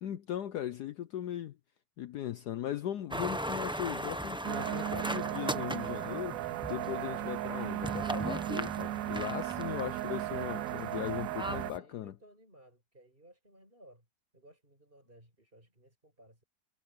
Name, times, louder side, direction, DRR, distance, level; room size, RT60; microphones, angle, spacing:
voice 1, 0.0-1.6 2.0-12.1, left 11 dB, 70° left, 1.2 m, -38 dB
sound 1, 3.1-11.8, right 1 dB, 5° right, 0.6 m, -39 dB
sound 2, 4.4-11.7, right 14 dB, 85° right, 0.7 m, -36 dB
voice 2, 11.6-14.1 14.3-16.4, right 1 dB, 25° right, 6.8 m, -60 dB
omnidirectional pair, 2.0 m